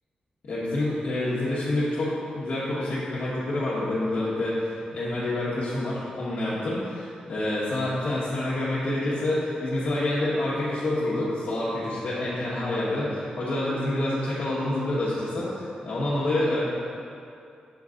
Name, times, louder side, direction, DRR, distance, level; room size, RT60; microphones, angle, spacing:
voice 1, 0.4-16.6, left 1 dB, 75° left, -11 dB, 1.1 m, -27 dB
7.3 x 3.9 x 3.7 m, 2.5 s
wide cardioid pair, 120°, 3 cm